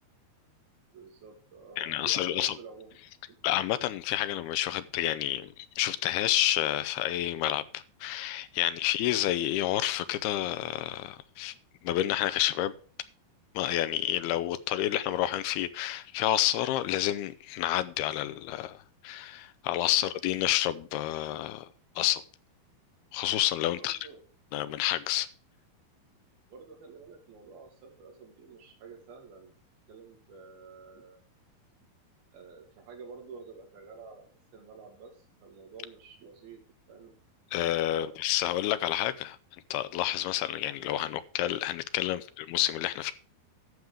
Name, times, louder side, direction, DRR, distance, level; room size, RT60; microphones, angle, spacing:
voice 1, 0.9-3.0 3.3-3.4 23.8-24.2 26.5-29.5 29.9-31.2 32.3-34.2 34.5-36.6 36.9-37.2 37.9-38.2 42.1-42.2, right 5 dB, 75° right, 3 dB, 4.1 m, -49 dB
voice 2, 1.8-2.5 3.4-11.5 11.8-12.7 13.6-21.7 22.0-22.2 23.1-24.0 24.5-25.3 37.5-39.4 39.7-43.1, left 13 dB, 85° left, 14 dB, 2.7 m, -29 dB
11.5 x 7.3 x 4.8 m, 0.40 s
omnidirectional pair, 4.4 m